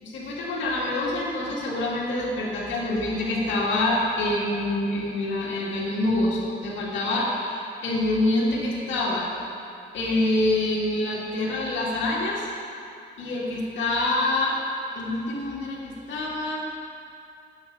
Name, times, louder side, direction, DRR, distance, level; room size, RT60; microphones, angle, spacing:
voice 1, 0.0-9.3 9.9-12.4 13.2-14.6 15.0-16.7, left 2 dB, 70° left, -5 dB, 2.0 m, -26 dB
9.3 x 7.2 x 4.8 m, 2.5 s
cardioid pair, 90°, 20 cm